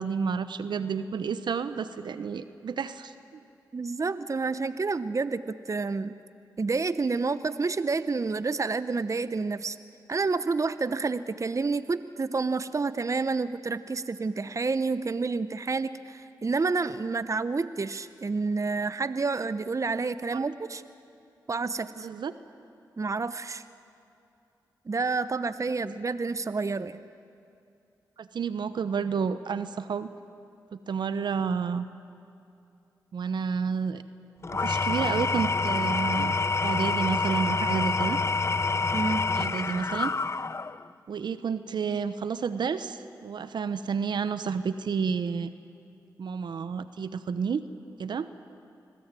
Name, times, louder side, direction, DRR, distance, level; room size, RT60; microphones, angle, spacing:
voice 1, 0.0-3.4 20.3-20.5 22.0-22.3 28.2-30.1 30.7-31.8 33.1-34.0 34.6-36.3 36.6-38.2 39.3-40.1 41.1-45.5 46.2-47.6 48.0-48.3, right 6 dB, 75° right, 12 dB, 0.9 m, -30 dB
voice 2, 3.7-6.2 6.6-9.8 10.1-20.8 21.5-22.1 23.0-23.6 24.9-27.0 38.9-39.2, right 4 dB, 45° right, 14 dB, 0.8 m, -29 dB
Engine / Tools, 34.4-40.9, left 3 dB, 40° left, 0.6 m, -27 dB
26.5 x 20.5 x 9.1 m, 2.6 s
cardioid pair, 50°, 8 cm